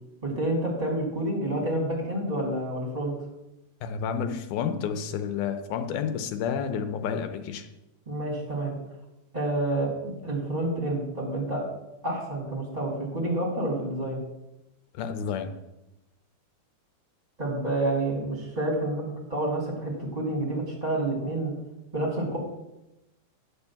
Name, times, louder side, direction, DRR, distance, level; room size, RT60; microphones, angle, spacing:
voice 1, 0.2-3.1 8.0-8.7 9.3-11.6 12.0-14.2 17.4-21.5 21.9-22.4, right 1 dB, 15° right, -3 dB, 1.7 m, -29 dB
voice 2, 3.8-7.7 14.9-15.5, left 7 dB, 80° left, 8 dB, 2.1 m, -30 dB
10.0 x 4.5 x 7.1 m, 0.95 s
omnidirectional pair, 3.7 m